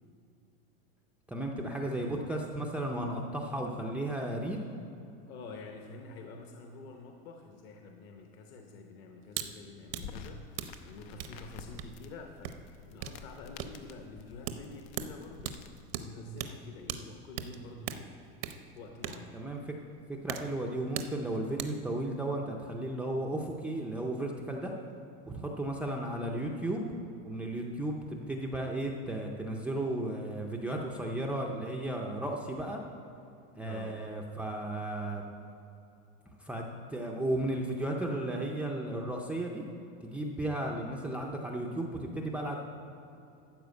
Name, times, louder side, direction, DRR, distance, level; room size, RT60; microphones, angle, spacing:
voice 1, 1.3-4.6 19.3-19.6 20.1-24.7 25.3-26.9 27.2-32.8 33.5-35.2 36.4-39.6 40.0-42.6, right 1 dB, 5° right, -1 dB, 0.4 m, -34 dB
voice 2, 5.3-10.5 10.8-15.6 15.9-18.2 18.7-19.4 33.6-34.0, left 3 dB, 40° left, 3 dB, 0.8 m, -48 dB
sound 1, 9.3-9.5 9.8-21.9, right 9 dB, 70° right, 0.8 m, -41 dB
sound 2, 9.9-15.9, left 6 dB, 90° left, 0.9 m, -49 dB
13.0 x 4.8 x 8.1 m, 2.7 s
supercardioid pair, 165°, 30 cm